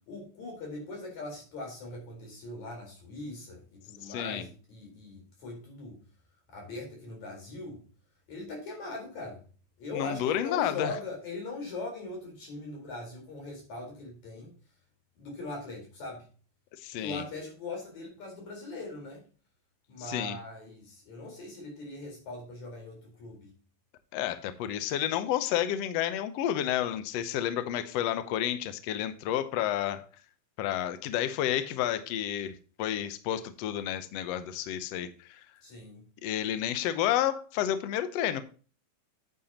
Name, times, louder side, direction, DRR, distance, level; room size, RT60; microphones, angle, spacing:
voice 1, 0.1-6.0 6.5-7.8 8.3-9.4 9.8-14.5 15.2-16.3 17.0-19.2 19.9-23.5 35.6-36.1, left 2 dB, 55° left, 5.4 m, -41 dB
voice 2, 4.0-4.5 9.9-10.9 16.8-17.2 20.0-20.4 24.1-30.0 30.6-35.4 36.2-38.4, left 11 dB, 90° left, 1.4 m, -30 dB
9.5 x 8.8 x 2.9 m
omnidirectional pair, 3.9 m